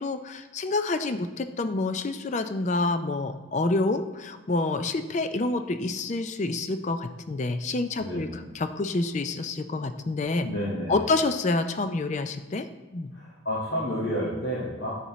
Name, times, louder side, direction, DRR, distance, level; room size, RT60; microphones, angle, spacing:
voice 1, 0.0-10.5 10.9-12.7 12.9-13.1, left 2 dB, 35° left, 9 dB, 0.4 m, -28 dB
voice 2, 8.0-8.3 9.7-9.9 10.4-11.0 13.1-14.9, equal, 65° left, -7 dB, 1.6 m, -30 dB
9.7 x 8.1 x 3.1 m, 1.3 s
head